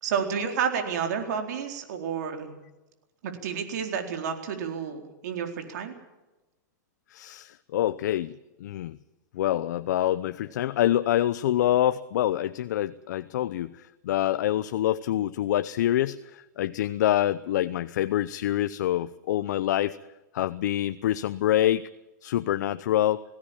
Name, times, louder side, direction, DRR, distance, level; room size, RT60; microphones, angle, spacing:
voice 1, 0.0-2.6 3.2-6.0, right 7 dB, 65° right, 4 dB, 4.2 m, -30 dB
voice 2, 7.1-9.0 9.3-20.0 20.3-21.9 22.2-23.2, left 12 dB, 70° left, 13 dB, 0.8 m, -26 dB
20.0 x 16.5 x 8.8 m, 1.0 s
hypercardioid pair, 140°, 10 cm